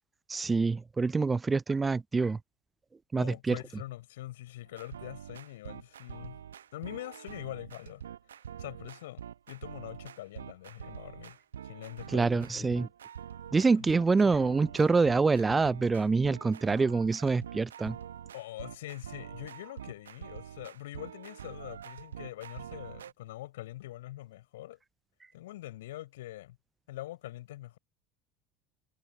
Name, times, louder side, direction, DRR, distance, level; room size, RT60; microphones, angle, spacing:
voice 1, 0.3-2.4 3.1-3.6 12.1-12.9 13.5-18.0, right 4 dB, 20° right, 0.3 m, -26 dB
voice 2, 3.2-6.4 6.7-8.0 8.6-11.4 11.6-12.9 13.8-13.9 18.3-24.8 25.3-26.6 26.9-27.8, left 15 dB, 65° left, 6.0 m, -44 dB
sound 1, 4.7-23.1, right 9 dB, 75° right, 1.0 m, -45 dB
figure-of-eight pair, 70°, 0 cm